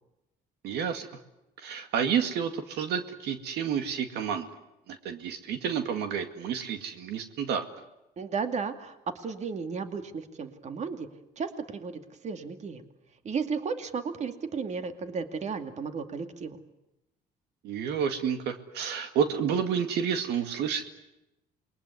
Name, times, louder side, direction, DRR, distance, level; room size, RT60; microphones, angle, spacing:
voice 1, 0.6-1.1 1.6-4.5 4.9-7.6 17.6-21.0, right 7 dB, 80° right, 7 dB, 2.2 m, -30 dB
voice 2, 8.2-11.1 11.4-12.8 13.2-16.6, right 5 dB, 40° right, 8 dB, 2.4 m, -34 dB
28.0 x 21.5 x 9.7 m, 0.92 s
cardioid pair, 110°, 17 cm